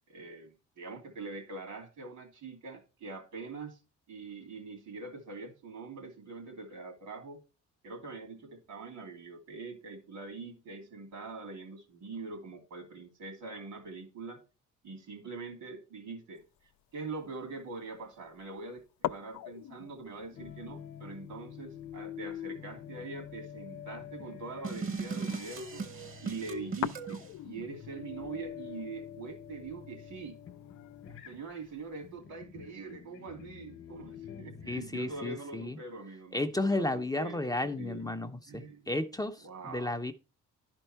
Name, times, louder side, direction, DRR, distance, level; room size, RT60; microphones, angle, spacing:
voice 1, 0.1-3.8 4.1-7.4 7.8-14.4 14.8-16.4 16.9-25.9 26.2-30.4 31.2-38.1 38.5-38.9 39.4-40.0, right 4 dB, 75° right, 2.8 m, -43 dB
sound 1, 16.4-32.2, left 12 dB, 70° left, 0.5 m, -45 dB
sound 2, 20.3-35.5, left 9 dB, 45° left, 0.9 m, -47 dB
sound 3, 24.6-27.3, right 4 dB, 45° right, 1.1 m, -38 dB
voice 2, 34.7-35.8 36.3-40.1, left 2 dB, 15° left, 0.6 m, -33 dB
11.0 x 4.5 x 4.4 m
cardioid pair, 90°, 30 cm